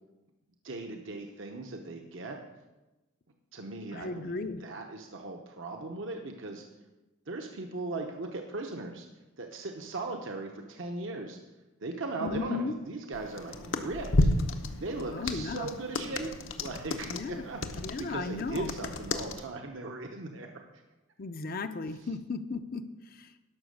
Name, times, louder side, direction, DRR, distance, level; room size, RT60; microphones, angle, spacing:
voice 1, 0.6-2.4 3.5-6.7 7.3-9.1 9.4-11.4 11.8-14.3 14.7-20.8, right 2 dB, 60° right, 3 dB, 0.9 m, -38 dB
voice 2, 3.9-4.6 12.2-12.7 15.1-15.7 17.1-17.4 17.8-18.7 21.2-23.4, left 3 dB, 45° left, 10 dB, 0.6 m, -35 dB
sound 1, 13.1-19.4, left 2 dB, 65° left, 0.9 m, -32 dB
12.0 x 5.9 x 6.4 m, 1.1 s
head